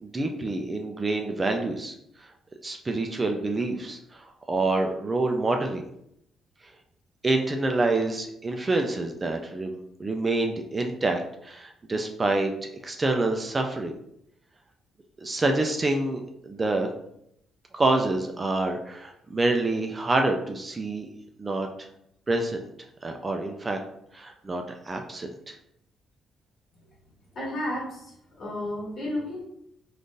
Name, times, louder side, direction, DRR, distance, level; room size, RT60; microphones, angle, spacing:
voice 1, 0.0-2.3 2.6-5.9 7.2-12.5 12.8-14.0 15.2-16.9 17.7-21.1 21.4-21.7 22.3-22.7 23.0-23.8 24.1-25.6, right 2 dB, 25° right, 4 dB, 0.4 m, -27 dB
voice 2, 27.3-28.0 28.4-29.4, left 1 dB, 50° left, -4 dB, 1.4 m, -32 dB
3.6 x 2.4 x 2.6 m, 0.77 s
cardioid pair, 90°, 0 cm